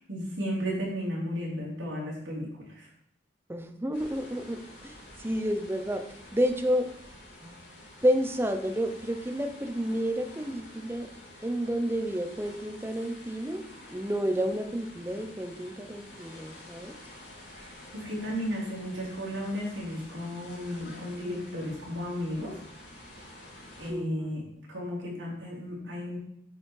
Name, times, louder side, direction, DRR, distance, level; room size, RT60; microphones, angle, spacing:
voice 1, 0.1-2.9 17.6-22.6 23.8-26.2, equal, 85° right, -6 dB, 3.5 m, -34 dB
voice 2, 3.5-4.9 5.2-6.0 6.3-6.9 7.4-7.6 8.0-11.1 11.4-13.6 13.9-17.0 23.9-24.4, equal, 15° right, 7 dB, 0.8 m, -30 dB
sound 1, 3.9-23.9, left 1 dB, 85° left, 4.2 m, -49 dB
9.0 x 6.4 x 4.7 m, 0.70 s
head